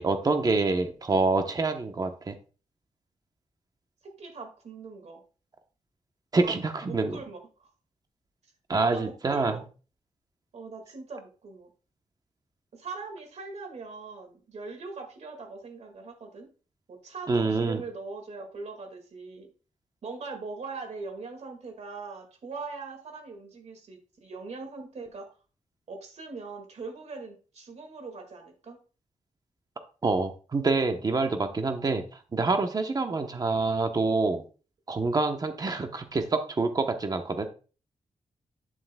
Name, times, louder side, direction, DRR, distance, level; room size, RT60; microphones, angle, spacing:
voice 1, 0.0-2.3 6.3-7.2 8.7-9.6 17.3-17.8 30.0-32.0 32.3-34.4 34.9-37.5, right 3 dB, 30° right, 6 dB, 0.9 m, -26 dB
voice 2, 4.2-5.2 6.3-6.5 6.8-7.7 8.9-9.7 10.5-11.7 12.7-16.5 16.9-19.5 20.0-25.3 25.9-28.8, right 4 dB, 60° right, 4 dB, 1.9 m, -41 dB
9.1 x 7.6 x 2.2 m, 0.36 s
wide cardioid pair, 170°, 13 cm